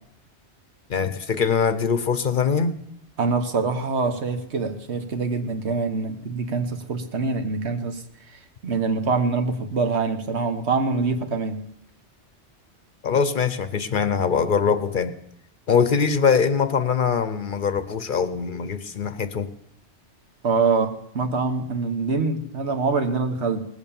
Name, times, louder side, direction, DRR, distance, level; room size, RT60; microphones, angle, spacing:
voice 1, 0.9-2.8 13.0-15.1 15.7-19.5, left 6 dB, 50° left, 12 dB, 0.8 m, -22 dB
voice 2, 3.2-8.0 8.6-11.7 20.4-23.6, right 4 dB, 70° right, 6 dB, 1.5 m, -24 dB
19.5 x 8.1 x 7.0 m, 0.76 s
omnidirectional pair, 1.2 m